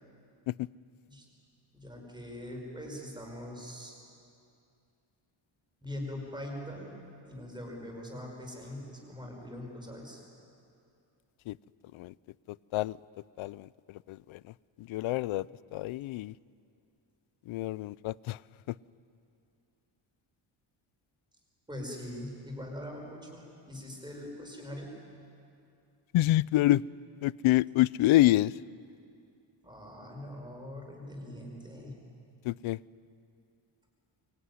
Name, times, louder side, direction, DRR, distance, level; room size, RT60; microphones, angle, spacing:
voice 1, 1.7-4.0 5.8-6.9 7.2-10.2 21.7-24.9 29.6-32.0, left 1 dB, 10° right, 0 dB, 5.3 m, -42 dB
voice 2, 13.4-14.4 14.8-15.5 15.7-16.3 17.5-18.4 26.1-26.8 27.2-28.5 32.4-32.8, left 16 dB, 80° left, 21 dB, 0.6 m, -27 dB
24.5 x 23.0 x 9.7 m, 2.6 s
cardioid pair, 165°, 48 cm